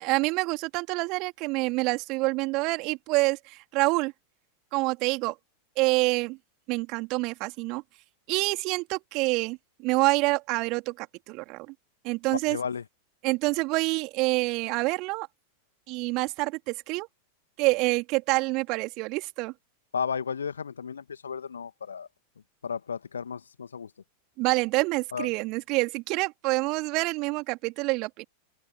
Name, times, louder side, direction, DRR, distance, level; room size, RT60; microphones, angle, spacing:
voice 1, 0.0-4.1 4.7-5.3 5.8-6.4 6.7-7.8 8.3-11.7 12.0-12.6 13.2-15.3 15.9-17.1 17.6-19.5 24.4-28.2, right 24 dB, 40° right, 3.1 m, -27 dB
voice 2, 12.5-12.8 19.9-22.1 22.6-23.9 25.1-25.3, left 6 dB, 70° left, 2.0 m, -33 dB
figure-of-eight pair, 90°, 0 cm